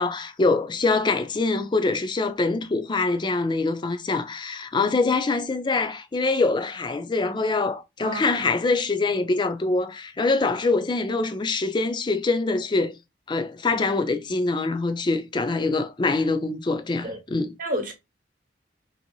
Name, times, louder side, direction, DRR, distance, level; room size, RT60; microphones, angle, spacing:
voice 1, 0.0-12.9 13.3-17.5, left 3 dB, 25° left, 0.4 m, -24 dB
voice 2, 8.0-8.5 13.7-13.8 17.0-17.2 17.6-17.9, equal, 50° right, 0.9 m, -31 dB
3.0 x 2.6 x 2.9 m
head